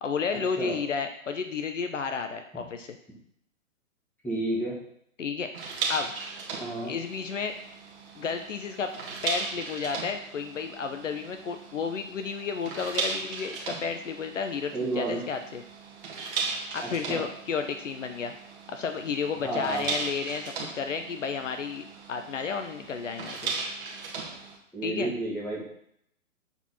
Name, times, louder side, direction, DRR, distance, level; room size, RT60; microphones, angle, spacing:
voice 1, 0.0-3.0 5.2-5.5 5.9-6.1 6.8-7.5 8.2-8.9 9.2-15.6 16.7-18.3 18.7-23.5 24.8-25.1, left 5 dB, 65° left, 7 dB, 0.8 m, -32 dB
voice 2, 4.2-4.8 6.6-6.9 14.7-15.2 17.1-17.3 19.4-19.9 24.7-25.7, right 2 dB, 5° left, -6 dB, 1.9 m, -31 dB
sound 1, 5.5-24.6, right 4 dB, 40° right, 1.7 m, -37 dB
7.0 x 4.5 x 4.2 m, 0.70 s
figure-of-eight pair, 130°, 40 cm